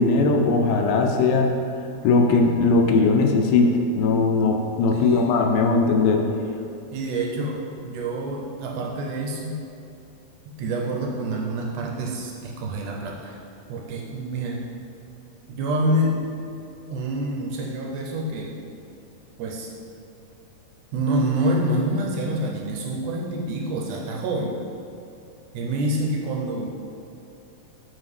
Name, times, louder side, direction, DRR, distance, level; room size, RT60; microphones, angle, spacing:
voice 1, 0.0-1.5 2.0-6.2, left 3 dB, 80° left, 3 dB, 2.2 m, -19 dB
voice 2, 4.9-5.3 6.9-9.6 10.6-13.4 13.7-14.7 15.5-16.3 16.9-18.6 19.4-19.7 20.9-24.5 25.5-26.8, right 1 dB, 80° right, -1 dB, 2.0 m, -27 dB
7.8 x 4.7 x 3.3 m, 2.5 s
omnidirectional pair, 3.9 m